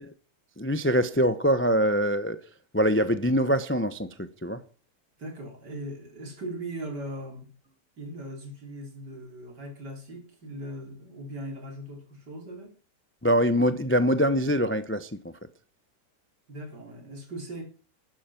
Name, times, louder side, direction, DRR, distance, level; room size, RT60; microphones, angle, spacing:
voice 1, 0.6-2.4 2.7-4.6 13.2-15.3, equal, 20° left, 0.3 m, -24 dB
voice 2, 5.2-7.5 8.0-12.7 16.5-17.6, right 1 dB, 80° right, 4.1 m, -39 dB
12.0 x 10.0 x 5.9 m
omnidirectional pair, 1.8 m